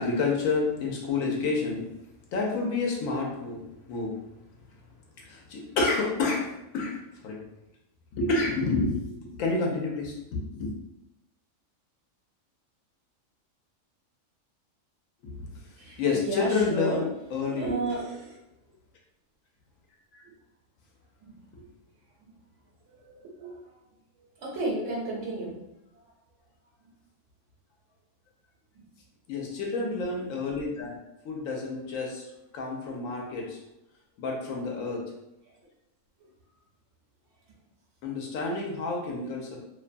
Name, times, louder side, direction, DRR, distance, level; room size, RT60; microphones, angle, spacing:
voice 1, 0.0-1.8 2.3-3.6 3.9-4.2 5.3-6.5 6.7-7.0 7.2-7.4 8.1-10.7 15.2-15.4 16.0-17.7 21.5-21.6 29.3-31.0 31.2-32.2 32.5-33.6 34.2-35.0 38.0-39.6, left 3 dB, 85° left, 0 dB, 1.0 m, -29 dB
voice 2, 15.8-17.1 17.5-18.4 20.2-20.3 21.2-21.4 23.1-23.7 24.4-25.6 28.8-28.9 31.3-31.5, right 2 dB, 70° right, -2 dB, 0.9 m, -33 dB
2.6 x 2.2 x 2.5 m, 0.90 s
omnidirectional pair, 1.4 m